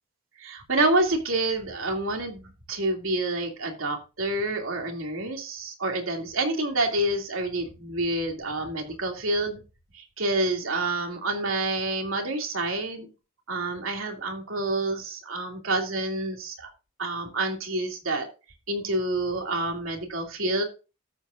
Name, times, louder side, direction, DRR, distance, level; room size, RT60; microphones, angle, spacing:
voice 1, 0.4-9.6 9.9-13.1 13.5-16.7 17.0-18.3 18.7-20.6, right 2 dB, 75° right, 2 dB, 2.6 m, -28 dB
13.0 x 8.1 x 2.5 m, 0.30 s
head